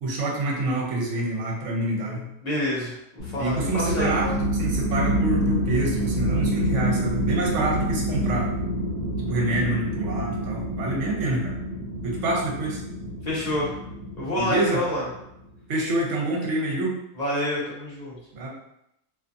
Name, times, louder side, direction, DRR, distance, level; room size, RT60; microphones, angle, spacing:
voice 1, 0.0-2.3 3.4-8.5 9.2-11.6 12.0-12.8 14.4-14.8 15.7-17.0 18.3-18.5, right 2 dB, 65° right, -2 dB, 1.0 m, -27 dB
voice 2, 2.4-4.4 13.2-13.8 14.2-15.1 17.2-18.2, left 1 dB, 40° left, -7 dB, 0.7 m, -28 dB
sound 1, 3.2-15.3, equal, 70° left, 1.0 m, -27 dB
2.5 x 2.4 x 2.5 m, 0.80 s
omnidirectional pair, 1.4 m